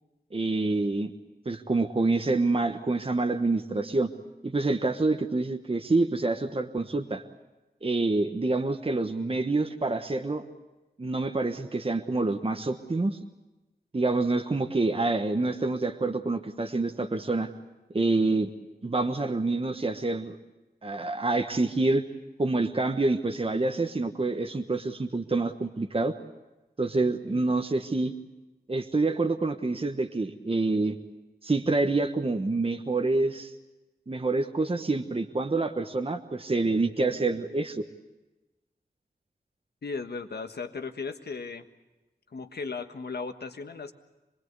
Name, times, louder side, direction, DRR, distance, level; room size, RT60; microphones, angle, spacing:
voice 1, 0.3-1.1 1.4-4.1 4.4-7.2 7.8-10.4 11.0-13.2 13.9-17.5 17.9-18.5 18.8-20.4 20.8-22.0 22.4-26.1 26.8-28.1 28.7-31.0 31.4-33.5 34.1-37.8, right 3 dB, 35° right, 4 dB, 1.3 m, -27 dB
voice 2, 39.8-41.7 42.3-43.9, left 4 dB, 80° left, 7 dB, 1.5 m, -36 dB
26.5 x 20.5 x 8.2 m, 1.1 s
wide cardioid pair, 65°, 17 cm